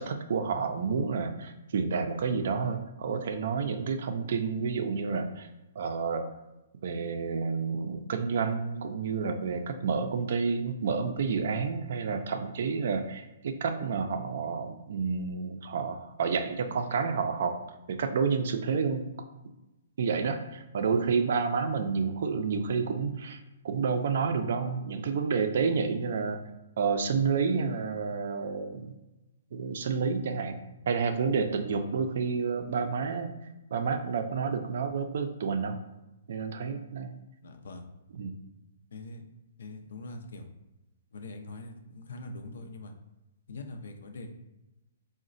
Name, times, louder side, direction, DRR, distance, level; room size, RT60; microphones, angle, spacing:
voice 1, 0.0-5.5 5.8-6.3 6.8-17.6 17.9-19.1 20.0-23.4 23.6-26.4 26.8-28.9 29.5-33.3 33.7-35.8 36.3-37.2 38.2-38.3, right 5 dB, 60° right, 6 dB, 0.3 m, -29 dB
voice 2, 37.4-37.8 38.9-39.2 39.6-40.5 41.1-42.9 43.5-44.3, left 2 dB, 75° left, 5 dB, 0.4 m, -42 dB
3.8 x 2.1 x 2.5 m, 0.99 s
hypercardioid pair, 155°, 0 cm